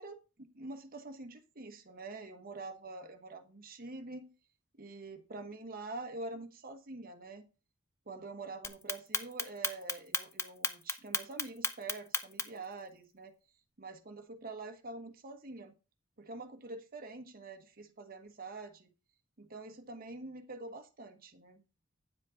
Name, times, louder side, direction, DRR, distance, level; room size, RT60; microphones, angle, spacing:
voice 1, 0.0-4.3 4.8-7.5 8.1-13.3 13.8-15.7 16.2-18.9 19.4-21.6, right 3 dB, 45° right, 6 dB, 1.2 m, -46 dB
Clock, 8.6-12.7, left 4 dB, 15° left, 0.7 m, -33 dB
9.6 x 7.4 x 3.8 m, 0.33 s
head